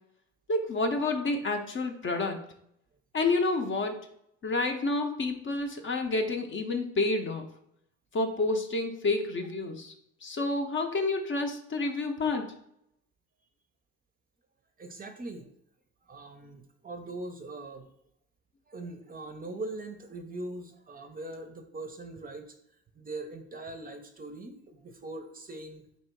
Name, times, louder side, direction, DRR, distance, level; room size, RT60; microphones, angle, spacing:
voice 1, 0.5-2.4 3.1-4.1 4.4-7.5 8.1-9.9 10.2-12.5, left 2 dB, 40° left, 5 dB, 0.6 m, -29 dB
voice 2, 14.8-15.5 16.1-17.8 18.7-22.4 23.0-25.8, right 2 dB, 30° right, 5 dB, 0.5 m, -41 dB
3.0 x 2.7 x 4.5 m, 0.74 s
cardioid pair, 90°, 30 cm